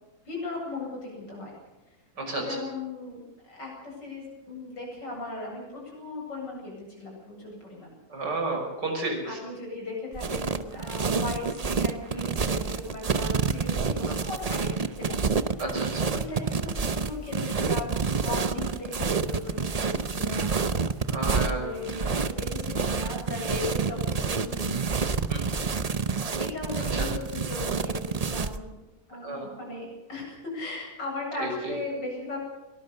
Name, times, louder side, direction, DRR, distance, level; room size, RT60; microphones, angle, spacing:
voice 1, 0.2-1.6 2.3-8.0 9.0-15.2 15.8-20.6 21.3-24.8 26.4-28.8 29.1-32.4, left 2 dB, 90° left, -1 dB, 8.8 m, -37 dB
voice 2, 8.1-9.3 15.6-16.1 21.1-21.6 25.3-25.7 29.2-29.4 31.4-31.5, right 2 dB, 75° right, 2 dB, 6.4 m, -31 dB
sound 1, 10.1-28.6, right 5 dB, 40° right, 0.5 m, -28 dB
23.0 x 19.5 x 6.8 m, 1.1 s
omnidirectional pair, 1.8 m